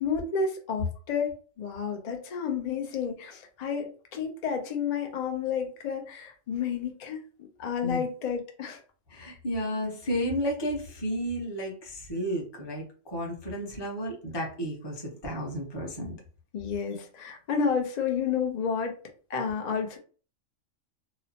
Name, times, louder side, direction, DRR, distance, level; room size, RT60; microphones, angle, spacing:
voice 1, 0.0-7.2 7.6-8.8 16.5-18.9 19.3-20.0, left 6 dB, 60° left, 3 dB, 0.4 m, -30 dB
voice 2, 9.1-16.1, equal, 25° left, -1 dB, 0.7 m, -32 dB
2.9 x 2.0 x 2.7 m, 0.39 s
omnidirectional pair, 1.4 m